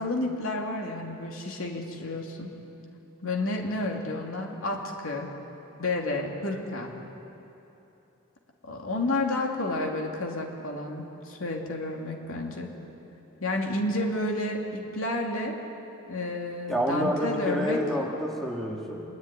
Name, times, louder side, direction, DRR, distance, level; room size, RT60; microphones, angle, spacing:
voice 1, 0.0-2.6 3.2-5.3 5.8-6.9 8.7-12.7 13.4-15.5 16.1-17.8, left 2 dB, 75° left, 1 dB, 2.7 m, -31 dB
voice 2, 16.7-19.0, equal, ahead, -2 dB, 2.1 m, -28 dB
26.5 x 11.5 x 9.9 m, 3.0 s
head